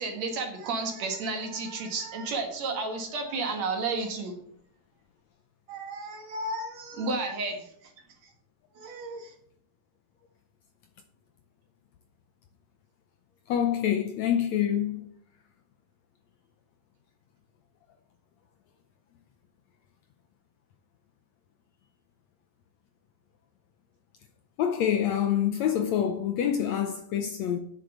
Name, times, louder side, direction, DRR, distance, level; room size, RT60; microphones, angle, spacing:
voice 1, 0.0-4.4 5.7-7.7 8.8-9.3, right 3 dB, 60° right, 2.6 m, -32 dB
voice 2, 13.5-15.1 24.6-27.6, left 9 dB, 70° left, 1.7 m, -26 dB
8.9 x 6.5 x 6.6 m
omnidirectional pair, 3.8 m